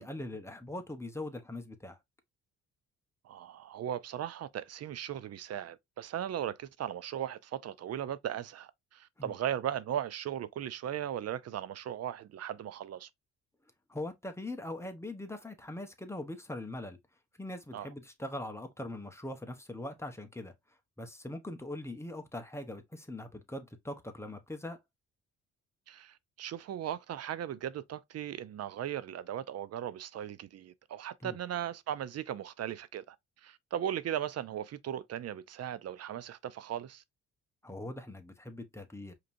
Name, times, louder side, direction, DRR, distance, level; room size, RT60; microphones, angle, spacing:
voice 1, 0.0-2.0 9.2-9.3 13.9-17.0 17.4-20.5 21.0-24.8 31.2-31.4 37.6-39.1, left 1 dB, 10° left, 1.1 m, -41 dB
voice 2, 3.2-13.1 17.7-17.9 25.9-33.2 33.4-37.0, right 10 dB, 55° right, 0.6 m, -37 dB
5.1 x 3.0 x 2.6 m
cardioid pair, 90°, 30 cm